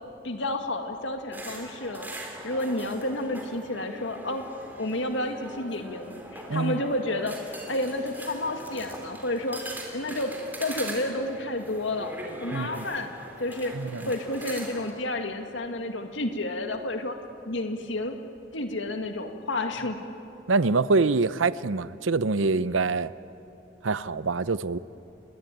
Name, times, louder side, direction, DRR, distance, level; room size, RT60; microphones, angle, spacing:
voice 1, 0.2-4.4 4.8-9.6 9.9-10.3 10.6-12.1 12.4-13.1 13.4-13.7 14.1-17.2 17.5-18.2 18.5-20.1, left 1 dB, 75° left, 5 dB, 2.0 m, -30 dB
sound 1, 1.3-14.9, right 1 dB, 10° right, 3.6 m, -41 dB
voice 2, 6.5-6.8 12.5-12.8 13.7-14.1 20.5-23.1 23.8-24.8, right 3 dB, 90° right, 16 dB, 0.7 m, -25 dB
29.5 x 22.0 x 9.1 m, 2.8 s
head